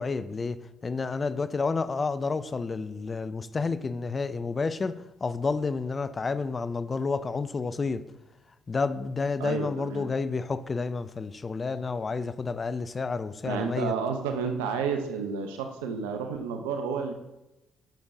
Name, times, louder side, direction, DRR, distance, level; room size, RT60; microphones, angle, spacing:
voice 1, 0.0-8.0 8.7-13.9, left 4 dB, 35° left, 0.4 m, -30 dB
voice 2, 9.4-10.1 13.4-17.1, right 6 dB, 75° right, 0.7 m, -31 dB
10.5 x 6.8 x 2.7 m
hypercardioid pair, 45°, 0 cm